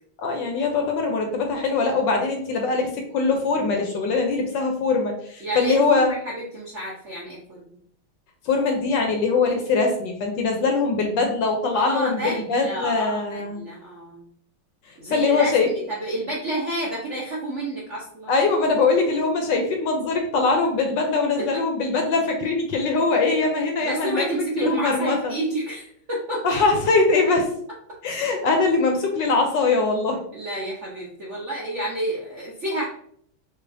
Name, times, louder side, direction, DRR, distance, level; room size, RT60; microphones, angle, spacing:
voice 1, 0.2-6.1 8.4-13.6 15.1-15.7 18.3-25.2 26.4-27.5 28.0-30.2, left 3 dB, 70° left, 3 dB, 1.2 m, -22 dB
voice 2, 5.4-7.8 11.7-14.2 15.0-18.3 21.4-21.5 23.4-23.5 23.8-26.5 30.3-32.9, right 1 dB, 60° right, -5 dB, 0.7 m, -30 dB
6.2 x 2.5 x 2.6 m, 0.65 s
omnidirectional pair, 2.3 m